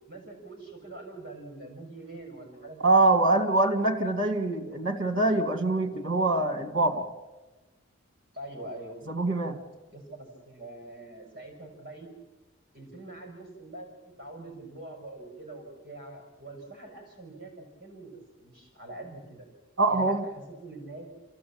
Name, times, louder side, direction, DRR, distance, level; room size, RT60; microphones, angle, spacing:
voice 1, 0.1-3.0 8.3-9.0 9.9-12.1 12.7-13.9 14.2-18.1 18.4-19.5 19.9-21.1, right 2 dB, 50° right, 1 dB, 6.0 m, -44 dB
voice 2, 2.8-7.1 9.1-9.6 19.8-20.2, right 2 dB, 70° right, 6 dB, 2.5 m, -24 dB
30.0 x 15.0 x 8.8 m, 1.2 s
head